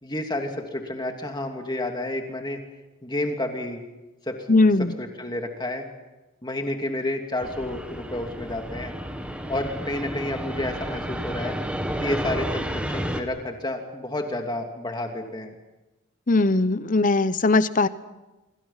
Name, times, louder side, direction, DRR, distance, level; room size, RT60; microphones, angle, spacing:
voice 1, 0.0-2.6 3.0-3.8 4.3-4.4 4.8-5.8 6.4-8.9 9.5-11.6 12.0-15.5, left 1 dB, 20° left, 4 dB, 2.7 m, -30 dB
voice 2, 4.5-4.9 16.3-17.9, left 3 dB, 40° left, 14 dB, 0.8 m, -19 dB
Fixed-wing aircraft airplane, 7.4-13.2, equal, 5° right, 1.8 m, -31 dB
26.5 x 24.5 x 5.8 m, 1.1 s
head